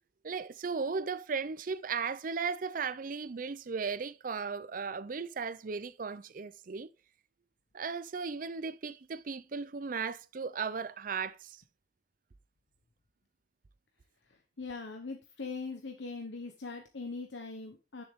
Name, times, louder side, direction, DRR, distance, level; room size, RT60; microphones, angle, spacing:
voice 1, 0.2-6.9 7.7-11.6, right 5 dB, 50° right, 0.5 m, -36 dB
voice 2, 14.6-18.0, left 4 dB, 80° left, 1.0 m, -41 dB
10.5 x 6.6 x 3.6 m
head